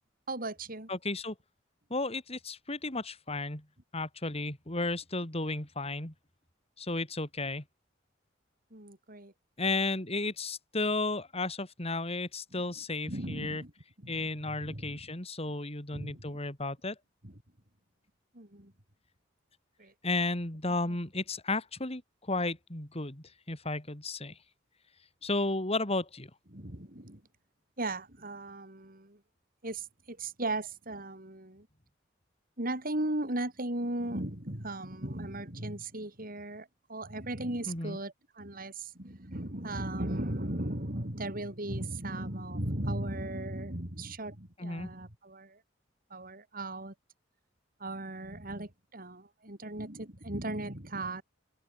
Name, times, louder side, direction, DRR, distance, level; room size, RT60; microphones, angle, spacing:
voice 1, 0.3-0.9 8.7-9.3 13.1-13.7 14.0-15.0 15.9-16.4 17.2-17.3 18.3-18.7 19.8-19.9 26.5-27.2 27.8-29.2 29.6-31.7 32.6-45.6 46.1-46.9 47.8-51.2, right 1 dB, 50° right, 4.9 m, -37 dB
voice 2, 0.9-1.4 1.9-3.6 3.9-6.1 6.8-7.6 9.6-13.6 14.1-17.0 20.0-22.0 22.3-24.4 25.2-26.3 37.7-38.0 44.6-44.9, left 2 dB, 35° left, 3.8 m, -33 dB
open air
head